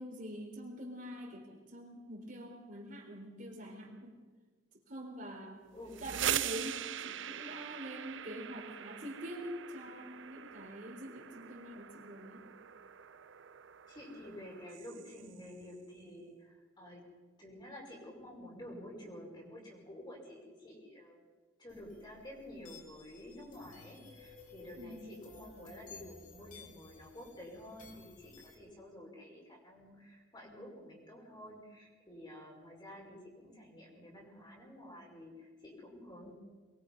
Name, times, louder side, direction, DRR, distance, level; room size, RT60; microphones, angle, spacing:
voice 1, 0.0-4.1 4.9-5.6 6.0-12.4 24.8-25.1, equal, 40° right, 0 dB, 4.0 m, -45 dB
voice 2, 5.7-6.3 13.9-17.1 17.4-21.2 21.6-36.3, left 1 dB, 20° left, -2 dB, 5.2 m, -50 dB
sound 1, 5.8-15.5, right 11 dB, 65° right, 0.6 m, -42 dB
sound 2, 21.7-28.5, left 4 dB, 40° left, 2.6 m, -56 dB
23.5 x 21.0 x 5.5 m, 1.3 s
head